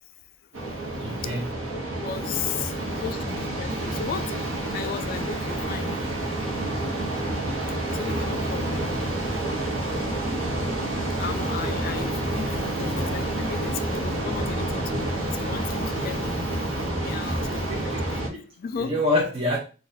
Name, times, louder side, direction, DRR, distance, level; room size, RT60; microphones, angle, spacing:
sound 1, 0.5-18.3, right 1 dB, 70° right, 0.8 m, -28 dB
voice 1, 0.9-1.5 17.3-18.5 18.8-19.6, left 1 dB, 30° right, 0.7 m, -28 dB
voice 2, 1.7-6.0 7.9-8.9 11.2-16.6 17.0-18.2 18.6-18.9, left 7 dB, 45° left, 0.3 m, -35 dB
4.0 x 2.3 x 2.6 m
head